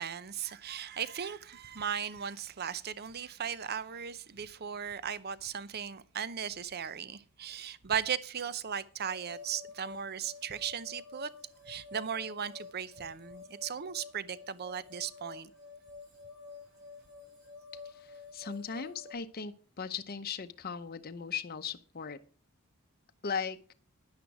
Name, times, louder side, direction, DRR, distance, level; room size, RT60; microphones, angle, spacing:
voice 1, 0.0-11.3 11.7-15.5, right 8 dB, 50° right, 0.6 m, -37 dB
sound 1, 9.1-19.1, left 4 dB, 85° right, 6.5 m, -50 dB
voice 2, 17.9-22.2 23.2-23.7, left 6 dB, 45° left, 0.7 m, -38 dB
10.5 x 10.0 x 4.8 m
head